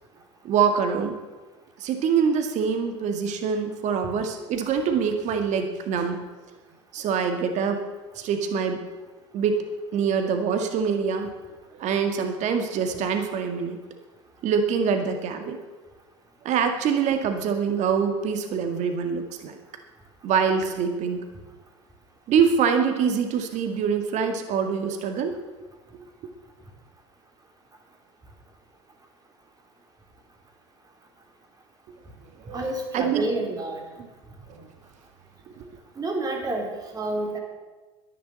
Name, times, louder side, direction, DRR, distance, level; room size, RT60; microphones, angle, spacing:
voice 1, 0.4-1.1 1.8-6.2 6.9-7.8 8.2-8.8 9.3-9.6 9.9-11.3 11.8-13.8 14.4-15.6 16.4-19.6 20.2-21.2 22.3-25.4 32.4-32.6 32.9-33.3 34.0-34.1 34.5-34.7 35.6-35.7, right 6 dB, 50° right, 6 dB, 2.1 m, -24 dB
voice 2, 32.5-33.8 36.0-37.4, right 2 dB, 25° right, 1 dB, 4.2 m, -29 dB
11.0 x 11.0 x 8.1 m, 1.2 s
hypercardioid pair, 80°, 15 cm